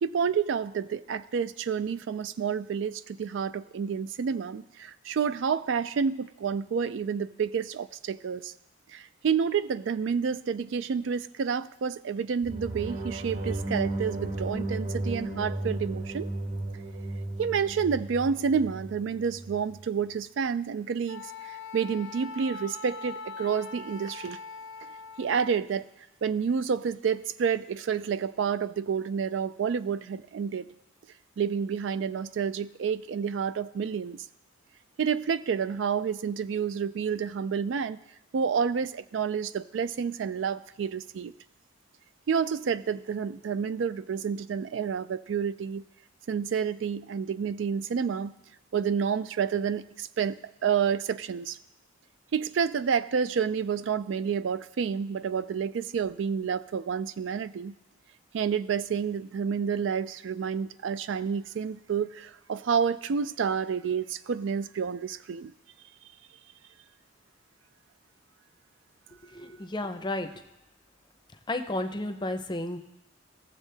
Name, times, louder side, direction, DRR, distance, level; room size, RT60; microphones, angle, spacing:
voice 1, 0.0-8.5 8.9-16.3 17.4-24.4 25.2-25.9 26.2-30.7 31.4-34.2 35.0-38.0 38.3-41.3 42.3-45.8 46.3-48.3 48.7-51.6 52.3-57.8 58.3-65.5, right 6 dB, 65° right, 15 dB, 0.3 m, -29 dB
sound 1, 12.4-19.7, right 2 dB, 50° right, 1.4 m, -34 dB
Wind instrument woodwind instrument, 21.1-25.3, left 4 dB, 75° left, 0.9 m, -42 dB
voice 2, 69.3-70.3 71.5-72.8, left 2 dB, 25° left, 8 dB, 0.6 m, -32 dB
16.5 x 7.2 x 3.4 m, 0.93 s
head